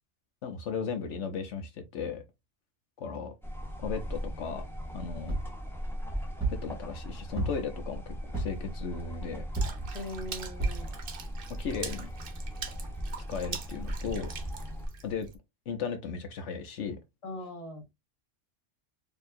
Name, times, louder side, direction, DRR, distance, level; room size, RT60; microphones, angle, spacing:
voice 1, 0.4-2.2 3.0-3.3 3.8-4.7 4.9-5.4 6.6-9.4 11.6-12.1 13.3-14.3 15.0-15.3 15.7-17.0, left 6 dB, 75° left, 1.1 m, -36 dB
sound 1, 3.4-14.9, equal, ahead, 0.7 m, -39 dB
sound 2, 5.3-5.6 6.4-6.7 7.4-7.8 8.3-8.7 9.6-9.9 10.6-10.9 11.5-11.6 11.8-11.9, right 2 dB, 15° right, 1.8 m, -31 dB
Water / Splash splatter, 9.5-15.4, right 6 dB, 55° right, 0.8 m, -43 dB
voice 2, 9.9-10.9 17.2-17.9, left 1 dB, 30° left, 1.0 m, -40 dB
4.4 x 2.9 x 2.6 m
omnidirectional pair, 1.2 m